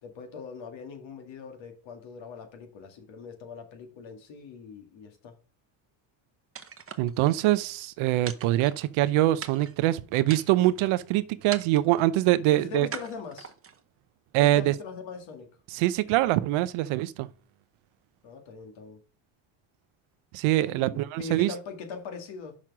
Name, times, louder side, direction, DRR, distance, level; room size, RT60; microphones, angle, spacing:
voice 1, 0.0-5.3 12.5-13.5 14.4-15.6 18.2-19.0 20.7-22.6, left 5 dB, 65° left, 2.1 m, -41 dB
sound 1, 6.6-7.4 8.3-9.1 9.4-9.9 10.3-10.8 11.5-12.1 12.9-13.8, right 7 dB, 25° right, 0.9 m, -41 dB
voice 2, 7.0-12.9 14.3-14.7 15.7-17.3 20.3-21.5, right 15 dB, 75° right, 0.8 m, -24 dB
6.1 x 4.4 x 6.1 m
supercardioid pair, 85°, 49 cm